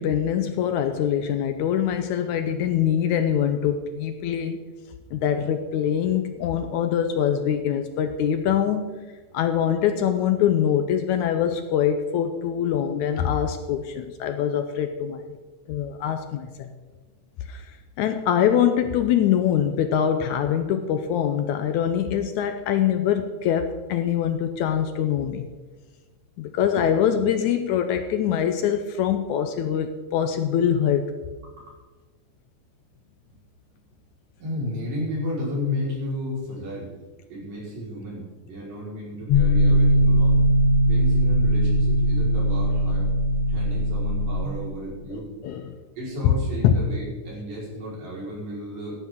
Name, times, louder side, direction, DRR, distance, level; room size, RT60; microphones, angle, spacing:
voice 1, 0.0-4.6 5.1-9.0 9.3-15.4 15.7-16.7 17.5-25.5 26.4-31.1 45.1-45.8 46.2-46.3 46.6-46.7, left 9 dB, 75° left, 8 dB, 1.9 m, -24 dB
voice 2, 34.4-36.9 37.3-40.4 40.9-43.1 43.5-45.3 46.0-48.9, left 1 dB, 75° right, -5 dB, 6.5 m, -32 dB
sound 1, 39.3-44.5, equal, 60° left, 1.9 m, -20 dB
17.5 x 12.5 x 3.9 m, 1.3 s
omnidirectional pair, 3.9 m